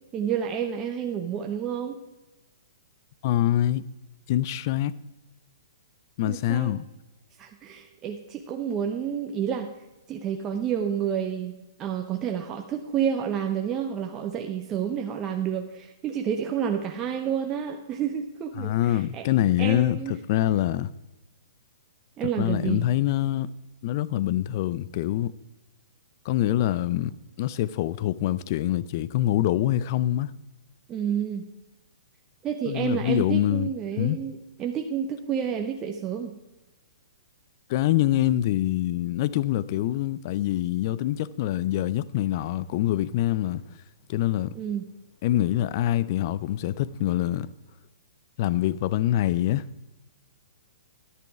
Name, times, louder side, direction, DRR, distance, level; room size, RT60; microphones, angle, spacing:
voice 1, 0.1-2.0 6.2-6.8 7.4-9.7 10.1-19.2 19.6-20.2 22.2-22.9 30.9-31.5 32.4-36.4 44.5-44.9, right 8 dB, 25° right, 0.8 m, -29 dB
voice 2, 3.2-3.8 4.3-4.9 6.2-6.8 18.6-20.9 22.2-23.5 23.8-25.3 26.2-27.1 27.4-30.3 32.7-33.7 34.0-34.2 37.7-43.6 44.1-44.5 45.2-47.5 48.4-49.7, left 13 dB, 45° left, 0.5 m, -25 dB
11.0 x 9.2 x 4.7 m
hypercardioid pair, 125°, 2 cm